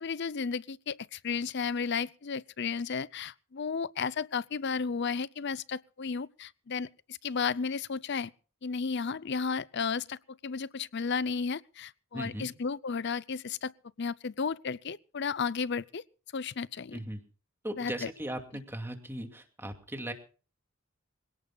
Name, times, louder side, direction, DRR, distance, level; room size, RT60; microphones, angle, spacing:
voice 1, 0.0-8.3 8.6-13.7 14.0-16.0 16.3-17.0 17.8-18.1, left 5 dB, 55° left, 0.6 m, -33 dB
voice 2, 12.1-12.5 16.9-17.2 17.6-20.1, right 1 dB, 10° right, 2.4 m, -38 dB
26.0 x 17.5 x 2.4 m
head